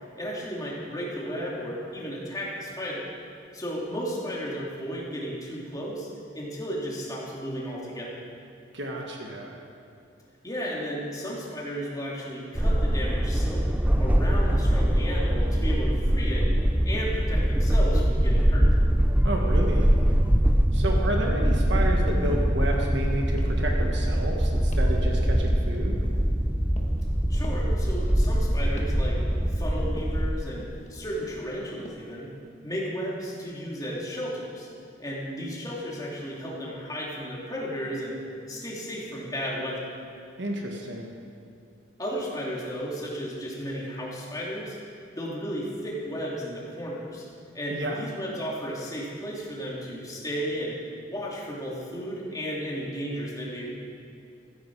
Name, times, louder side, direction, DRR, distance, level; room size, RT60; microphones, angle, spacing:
voice 1, 0.2-3.1 3.5-6.1 6.3-8.2 10.4-13.7 14.0-16.5 16.8-18.7 27.3-29.2 29.5-32.3 32.6-34.7 35.0-38.2 38.5-39.9 42.0-44.8 45.2-47.3 47.5-50.8 51.1-53.7, equal, 20° left, -4 dB, 2.7 m, -34 dB
voice 2, 8.7-9.5 19.2-19.9 20.7-26.0 40.4-41.1 47.7-48.0, right 1 dB, 65° right, 0 dB, 1.6 m, -31 dB
sound 1, 12.6-30.3, equal, 10° right, 0.5 m, -23 dB
sound 2, 22.1-22.4 22.7-23.1 23.4-23.8 24.0-24.4 24.7-25.0 25.3-26.3 26.8-27.1 27.4-27.7 28.1-28.4 28.8-29.1 29.3-29.7 30.0-30.2 30.6-30.9 31.2-31.5 31.9-32.1, left 1 dB, 35° left, 1.5 m, -45 dB
15.0 x 14.5 x 4.8 m, 2.5 s
head